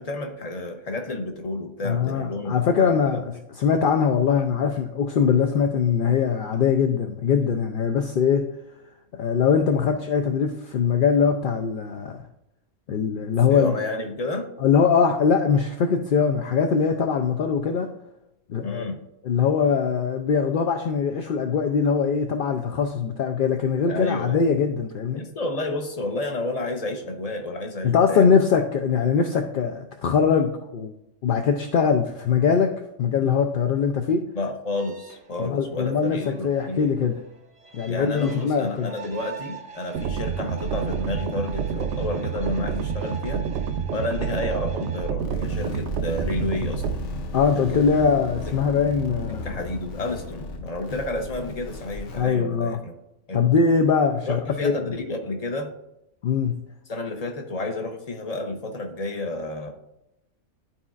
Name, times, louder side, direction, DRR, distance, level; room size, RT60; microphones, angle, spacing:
voice 1, 0.0-3.2 13.5-14.5 18.6-19.0 23.9-24.5 25.1-28.3 34.3-36.9 37.9-43.5 43.9-47.1 47.6-47.8 48.5-48.6 49.3-52.9 53.3-53.4 54.2-55.7 56.9-59.7, left 2 dB, 35° left, 4 dB, 0.9 m, -31 dB
voice 2, 1.8-8.4 9.1-12.2 12.9-13.7 14.6-17.9 18.5-18.9 19.2-25.2 27.8-30.9 31.2-32.7 33.0-34.3 35.4-36.2 36.4-37.2 37.7-38.9 47.3-49.5 52.2-52.8 53.3-54.9 56.2-56.6, left 6 dB, 60° left, 4 dB, 0.6 m, -22 dB
sound 1, 34.8-45.1, right 5 dB, 30° right, 0.8 m, -44 dB
sound 2, 39.9-47.0, right 7 dB, 70° right, 0.8 m, -28 dB
sound 3, 45.2-52.2, left 2 dB, 75° left, 1.1 m, -35 dB
12.0 x 4.2 x 2.4 m, 0.85 s
omnidirectional pair, 1.3 m